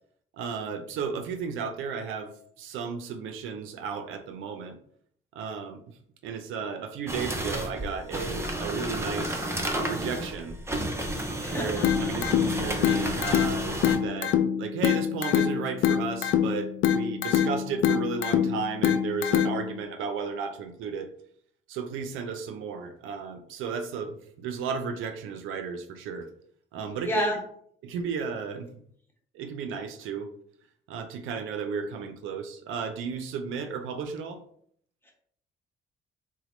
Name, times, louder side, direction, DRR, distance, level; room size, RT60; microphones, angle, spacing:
voice 1, 0.3-4.8 5.3-9.5 9.8-10.6 11.5-21.1 21.7-26.3 26.7-27.3 27.8-28.7 29.3-30.3 30.9-34.4, right 5 dB, 85° right, 7 dB, 0.5 m, -34 dB
sound 1, 7.1-14.0, right 1 dB, 15° right, 0.5 m, -32 dB
voice 2, 11.4-12.1 27.0-27.4 35.0-35.1, left 1 dB, 10° left, -1 dB, 1.1 m, -30 dB
sound 2, 11.8-19.8, left 9 dB, 70° left, 0.4 m, -25 dB
4.0 x 2.2 x 3.0 m, 0.63 s
cardioid pair, 90°, 20 cm